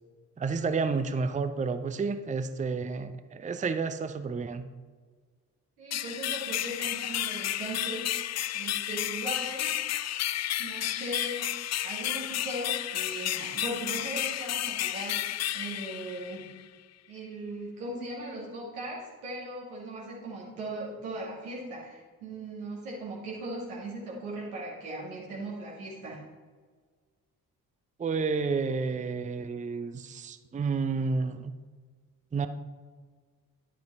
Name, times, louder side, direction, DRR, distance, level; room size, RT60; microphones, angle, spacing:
voice 1, 0.4-4.7 28.0-31.5 32.3-32.5, right 4 dB, 20° right, 10 dB, 0.6 m, -30 dB
voice 2, 5.8-8.3 8.5-9.8 10.6-11.5 11.8-16.5 17.1-26.2, right 1 dB, 85° right, -5 dB, 2.2 m, -38 dB
sound 1, 5.9-16.6, left 12 dB, 40° left, 0.4 m, -32 dB
10.5 x 7.5 x 3.6 m, 1.5 s
hypercardioid pair, 40°, 43 cm